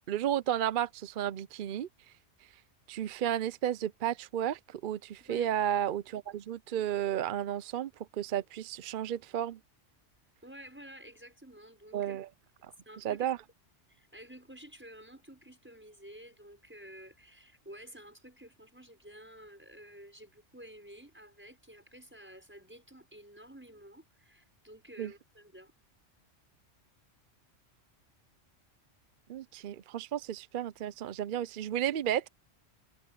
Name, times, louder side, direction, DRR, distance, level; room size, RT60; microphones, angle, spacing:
voice 1, 0.1-1.9 2.9-9.6 11.9-12.3 12.6-12.7 13.0-13.4 25.0-25.1 29.3-32.3, right 10 dB, 55° right, 0.6 m, -33 dB
voice 2, 5.2-5.5 10.4-12.2 12.9-13.3 13.9-25.7, equal, 10° right, 6.0 m, -51 dB
omnidirectional pair, 1.3 m